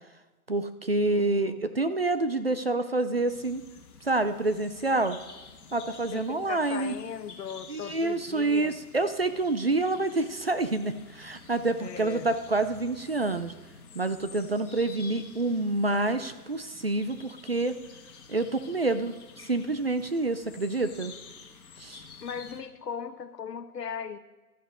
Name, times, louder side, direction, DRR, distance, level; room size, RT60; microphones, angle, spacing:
voice 1, 0.5-3.6 4.0-5.2 5.7-6.9 7.7-13.5 13.9-17.8 18.3-19.1 19.4-21.1 21.8-22.0, right 2 dB, 40° right, 11 dB, 0.4 m, -27 dB
voice 2, 1.1-1.8 6.1-8.8 11.8-12.3 22.2-24.2, left 7 dB, 85° left, 11 dB, 1.1 m, -38 dB
sound 1, 3.3-22.6, left 5 dB, 65° left, 1.9 m, -50 dB
15.0 x 12.0 x 3.6 m, 1.2 s
hypercardioid pair, 170°, 47 cm